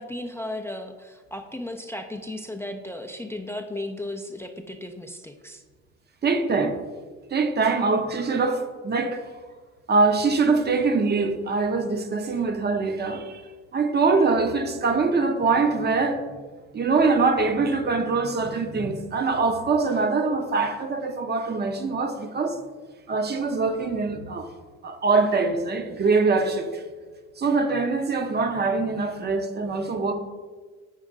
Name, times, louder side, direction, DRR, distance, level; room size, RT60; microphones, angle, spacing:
voice 1, 0.0-5.6, left 1 dB, 5° left, 5 dB, 0.4 m, -35 dB
voice 2, 6.2-6.8 7.3-9.2 9.9-13.4 13.7-16.2 16.7-22.6 23.1-24.5 24.8-26.8 27.4-30.1, right 4 dB, 25° right, 7 dB, 0.7 m, -23 dB
8.1 x 5.1 x 2.5 m, 1.4 s
hypercardioid pair, 60°, 36 cm